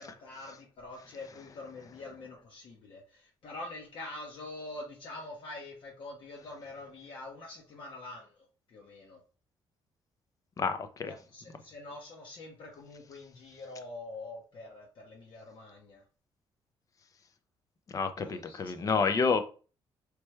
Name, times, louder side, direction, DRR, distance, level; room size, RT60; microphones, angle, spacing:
voice 1, 0.0-9.2 11.0-16.0 18.2-19.0, left 2 dB, 55° left, 1.0 m, -45 dB
voice 2, 10.6-11.1 17.9-19.4, left 5 dB, 35° left, 0.6 m, -29 dB
4.3 x 3.3 x 3.2 m
cardioid pair, 130°, 10 cm